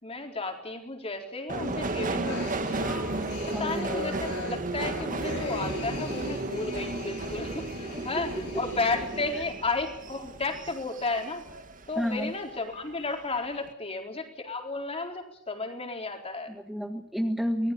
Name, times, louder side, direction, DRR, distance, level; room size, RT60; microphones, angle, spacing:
voice 1, 0.0-3.1 3.6-8.3 8.6-11.4 11.9-16.5, left 3 dB, 30° left, 3 dB, 4.2 m, -33 dB
Subway metro underground, 1.5-12.2 12.6-13.3 13.6-13.7, right 2 dB, 40° right, 1.8 m, -34 dB
sound 1, 1.6-9.5, left 3 dB, 90° left, 4.8 m, -41 dB
voice 2, 3.5-3.8 7.9-8.2 8.5-8.6 9.3-9.4 11.9-12.3 16.5-17.7, equal, ahead, 3 dB, 1.6 m, -31 dB
25.0 x 19.5 x 7.2 m, 0.73 s
head